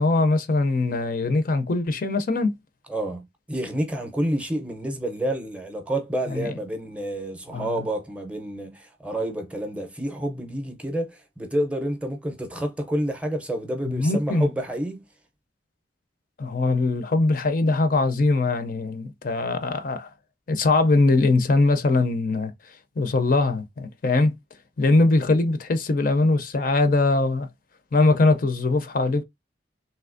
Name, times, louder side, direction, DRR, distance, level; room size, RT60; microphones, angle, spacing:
voice 1, 0.0-2.5 6.3-6.5 7.5-7.8 13.9-14.5 16.4-20.1 20.5-22.5 23.0-24.3 24.8-27.5 27.9-29.2, left 2 dB, 50° left, 0.5 m, -21 dB
voice 2, 2.9-15.0, right 1 dB, 5° right, 0.6 m, -29 dB
3.3 x 2.7 x 2.5 m
head